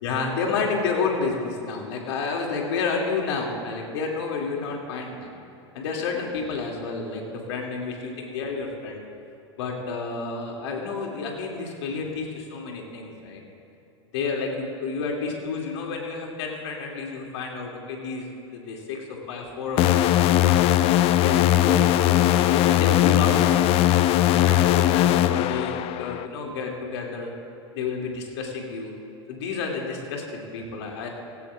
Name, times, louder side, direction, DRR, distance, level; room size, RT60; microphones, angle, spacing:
voice 1, 0.0-5.3 5.7-9.0 9.6-13.4 14.1-18.3 18.5-23.9 24.3-27.3 27.7-28.9 29.3-31.1, left 4 dB, 65° left, 0 dB, 2.5 m, -30 dB
sound 1, 19.8-26.3, left 13 dB, 40° left, 0.5 m, -19 dB
17.5 x 16.0 x 2.4 m, 2.9 s
hypercardioid pair, 95°, 15 cm